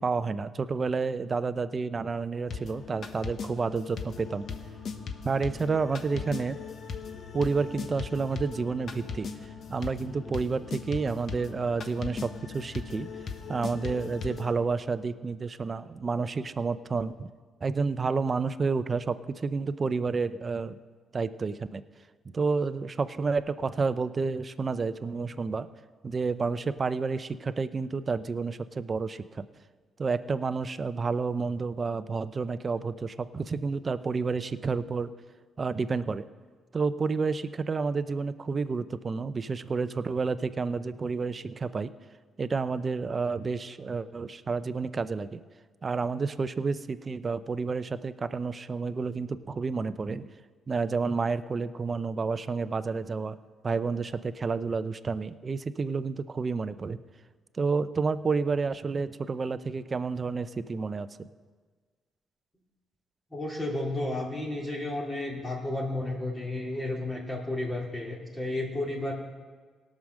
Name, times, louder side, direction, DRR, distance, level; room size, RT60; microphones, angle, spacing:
voice 1, 0.0-4.5 5.2-6.6 7.3-9.3 9.7-13.1 13.5-17.3 17.6-20.8 21.1-21.8 22.3-25.7 26.0-29.4 30.0-35.1 35.6-36.3 36.7-41.9 42.4-45.4 45.8-50.3 50.7-53.4 53.6-57.0 57.6-61.3, right 4 dB, 35° right, 13 dB, 0.5 m, -30 dB
sound 1, 2.5-14.5, left 5 dB, 55° left, 1.0 m, -39 dB
voice 2, 63.3-69.1, left 1 dB, 20° left, -2 dB, 2.4 m, -32 dB
17.0 x 6.4 x 6.4 m, 1.5 s
cardioid pair, 90°, 0 cm